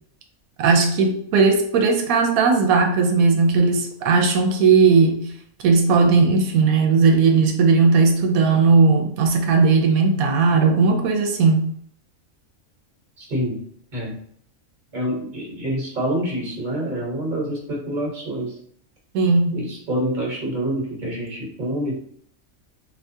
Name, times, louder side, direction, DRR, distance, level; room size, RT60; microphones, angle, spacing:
voice 1, 0.6-5.3 5.6-11.7 19.1-19.6, right 4 dB, 90° right, 3 dB, 1.0 m, -17 dB
voice 2, 13.2-13.6 13.9-14.2 14.9-18.5 19.5-22.0, right 1 dB, 40° right, -2 dB, 1.1 m, -27 dB
3.4 x 2.7 x 2.7 m, 0.63 s
omnidirectional pair, 1.5 m